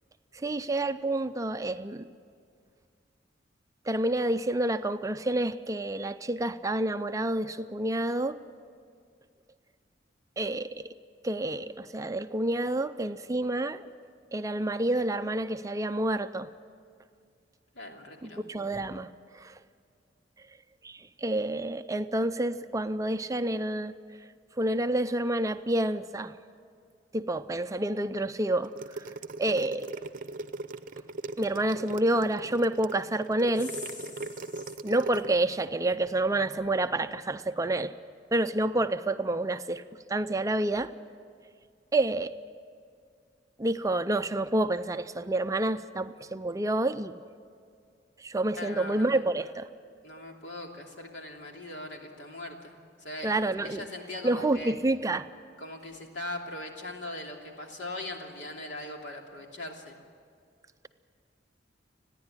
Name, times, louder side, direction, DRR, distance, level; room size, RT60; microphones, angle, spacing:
voice 1, 0.3-2.1 3.9-8.4 10.4-10.9 11.2-13.9 14.3-16.5 18.2-19.6 20.8-23.9 24.6-26.4 27.1-29.1 29.4-29.9 31.4-33.7 34.8-37.9 38.3-39.8 40.1-40.9 41.9-42.3 43.6-47.2 48.2-49.7 53.2-53.9 54.2-55.3, right 1 dB, 20° right, 11 dB, 0.5 m, -28 dB
voice 2, 17.7-18.5 33.6-33.9 34.1-34.7 48.5-49.2 50.0-53.3 53.6-54.7 55.6-60.0, left 1 dB, 75° left, 1 dB, 2.9 m, -40 dB
sound 1, 28.6-35.3, right 3 dB, 50° right, 0.7 m, -39 dB
30.0 x 10.5 x 9.9 m, 2.2 s
head